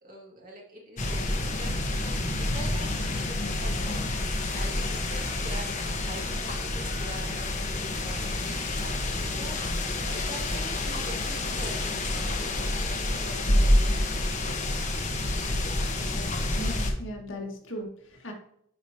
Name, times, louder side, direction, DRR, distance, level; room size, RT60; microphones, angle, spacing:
voice 1, 0.0-4.0 4.5-9.7 10.1-11.8 12.1-14.2 14.4-15.2 15.5-16.1, right 1 dB, 40° right, -2 dB, 2.2 m, -45 dB
sound 1, 1.0-16.9, left 1 dB, 35° left, 1.2 m, -28 dB
voice 2, 16.5-18.3, equal, 60° left, 0 dB, 1.8 m, -38 dB
10.0 x 4.9 x 2.8 m, 0.70 s
head